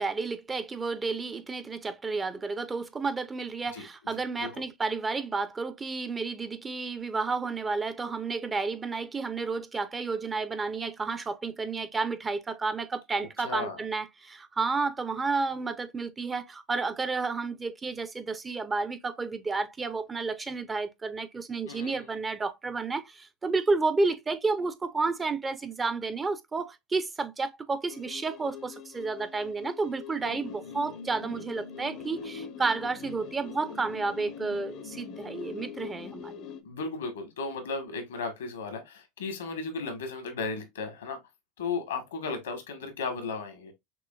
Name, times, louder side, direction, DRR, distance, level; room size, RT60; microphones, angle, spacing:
voice 1, 0.0-36.5, right 4 dB, 20° right, 0.5 m, -31 dB
voice 2, 13.4-13.8 21.7-22.1 36.6-41.2 41.6-43.7, left 4 dB, 85° left, 1.2 m, -35 dB
sound 1, 27.9-36.6, left 7 dB, 55° left, 0.6 m, -43 dB
6.0 x 2.4 x 2.3 m
hypercardioid pair, 85°, 0 cm